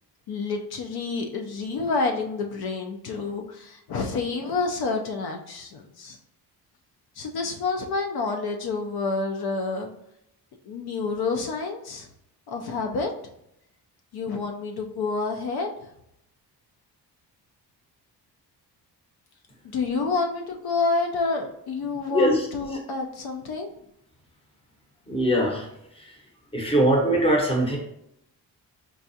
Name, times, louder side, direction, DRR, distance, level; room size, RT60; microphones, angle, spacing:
voice 1, 0.3-6.2 7.2-9.9 10.7-12.1 12.5-13.1 14.1-15.7 19.7-23.7, left 3 dB, 70° left, 3 dB, 0.5 m, -28 dB
voice 2, 22.1-22.5 25.1-25.7 26.5-27.8, right 1 dB, 15° left, 0 dB, 0.7 m, -21 dB
4.6 x 2.3 x 2.6 m, 0.78 s
cardioid pair, 130°, 40 cm